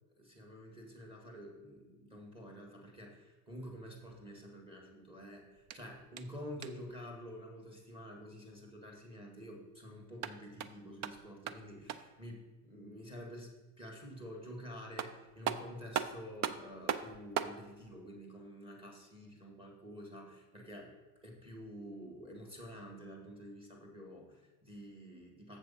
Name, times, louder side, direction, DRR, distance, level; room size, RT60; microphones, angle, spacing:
voice 1, 0.2-20.9 21.2-25.6, equal, 10° right, 1 dB, 1.9 m, -49 dB
sound 1, 5.6-7.0 10.0-12.2 14.5-14.6 15.0-17.6, right 9 dB, 35° right, 0.4 m, -39 dB
7.5 x 6.1 x 5.5 m, 1.2 s
supercardioid pair, 135°, 47 cm